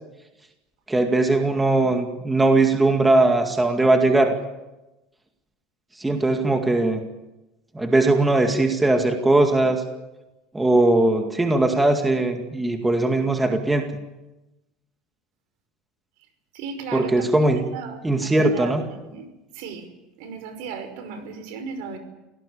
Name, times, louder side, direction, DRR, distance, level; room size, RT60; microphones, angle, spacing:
voice 1, 0.9-4.3 6.0-7.0 7.7-9.8 10.5-13.9 16.9-17.6 18.0-18.8, right 2 dB, 10° right, 4 dB, 2.1 m, -19 dB
voice 2, 16.5-19.3 19.5-19.9 20.2-22.0, right 5 dB, 75° right, 9 dB, 5.4 m, -36 dB
25.0 x 17.5 x 8.5 m, 1.0 s
cardioid pair, 150°, 0 cm